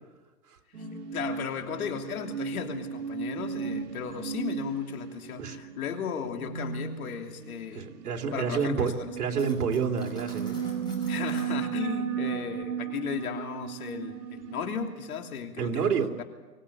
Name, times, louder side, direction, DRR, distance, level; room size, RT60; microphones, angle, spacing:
sound 1, 0.7-15.3, right 7 dB, 85° right, 1.9 m, -35 dB
voice 1, 1.1-7.9 8.3-9.1 11.1-16.2, left 7 dB, 65° left, 5 dB, 3.1 m, -35 dB
voice 2, 7.7-10.6 15.6-16.1, right 6 dB, 70° right, 2 dB, 3.1 m, -29 dB
Cutlery silverware, 9.3-11.5, left 2 dB, 10° left, 5.1 m, -50 dB
24.5 x 16.0 x 8.5 m, 1.2 s
hypercardioid pair, 150°, 47 cm